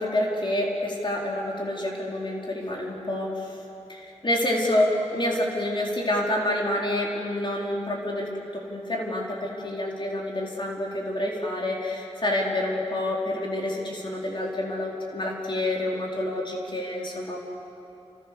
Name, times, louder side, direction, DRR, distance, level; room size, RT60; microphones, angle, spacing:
voice 1, 0.0-3.6 3.9-17.4, left 1 dB, 45° left, -2 dB, 4.5 m, -28 dB
30.0 x 27.5 x 7.0 m, 2.9 s
wide cardioid pair, 85°, 12 cm